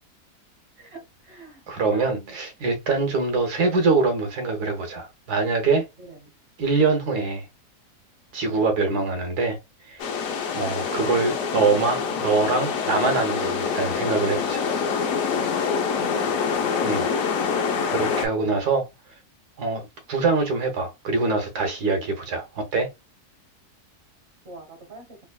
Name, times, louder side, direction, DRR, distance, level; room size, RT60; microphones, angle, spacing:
voice 1, 0.8-1.6 1.9-2.4 6.0-6.3 8.4-8.7 15.9-16.3 18.4-18.7 24.4-25.2, right 3 dB, 45° right, 1.3 m, -45 dB
voice 2, 1.7-5.8 6.6-7.5 8.3-9.6 9.9-10.1 10.5-14.7 16.8-17.0 17.9-18.9 19.6-22.9, right 4 dB, 80° right, 1.5 m, -24 dB
sound 1, 10.0-18.3, left 6 dB, 65° left, 1.0 m, -25 dB
3.4 x 3.1 x 2.2 m
omnidirectional pair, 1.7 m